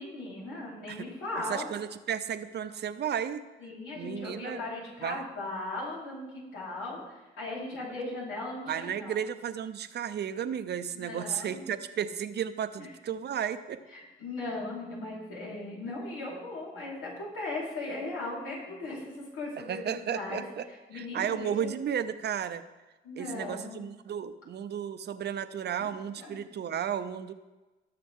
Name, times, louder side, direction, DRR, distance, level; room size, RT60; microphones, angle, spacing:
voice 1, 0.0-1.7 3.6-9.2 10.9-11.6 12.8-12.9 13.9-21.7 23.0-23.8 25.8-25.9 26.2-26.4, left 2 dB, 85° left, -5 dB, 4.3 m, -38 dB
voice 2, 1.5-3.4 3.9-4.6 5.0-5.2 8.7-13.8 19.7-20.6 20.9-22.6 23.2-27.3, right 8 dB, 55° right, 11 dB, 0.7 m, -33 dB
18.5 x 6.7 x 3.7 m, 1.1 s
cardioid pair, 90°, 20 cm